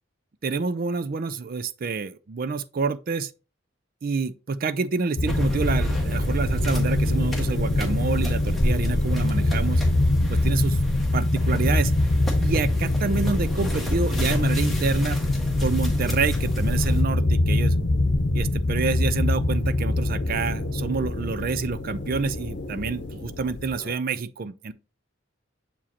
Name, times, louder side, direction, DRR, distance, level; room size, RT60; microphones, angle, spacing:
voice 1, 0.4-3.3 4.0-9.8 10.3-10.8 11.1-11.9 12.4-15.2 15.6-17.7 18.3-24.7, right 4 dB, 50° right, 0.4 m, -28 dB
sound 1, 5.2-23.9, left 2 dB, 60° left, 0.8 m, -24 dB
sound 2, 5.3-17.0, equal, ahead, 1.5 m, -31 dB
7.0 x 4.9 x 2.9 m
head